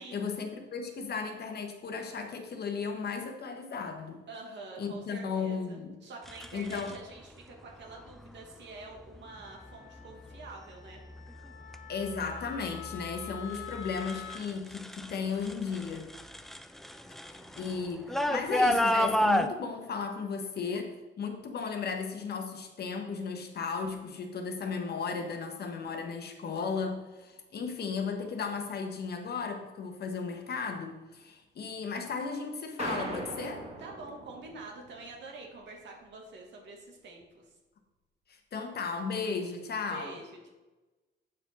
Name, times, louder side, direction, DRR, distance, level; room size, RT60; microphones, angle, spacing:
voice 1, 0.0-4.2 4.8-6.0 6.5-7.0 11.9-16.1 17.3-33.6 38.5-40.2, left 5 dB, 55° left, 4 dB, 1.1 m, -35 dB
voice 2, 4.3-11.0 17.1-17.5 33.8-37.5 39.9-40.5, right 3 dB, 65° right, 0 dB, 1.3 m, -47 dB
sound 1, 6.3-6.9 8.1-8.4 9.0-9.4 10.0-10.5 10.9-15.2 15.4-19.5, left 1 dB, ahead, 0.4 m, -31 dB
Wind instrument woodwind instrument, 9.3-14.4, left 8 dB, 75° left, 0.7 m, -47 dB
sound 2, 32.8-35.2, right 2 dB, 35° right, 1.7 m, -40 dB
7.8 x 4.4 x 4.1 m, 1.2 s
cardioid pair, 90°, 20 cm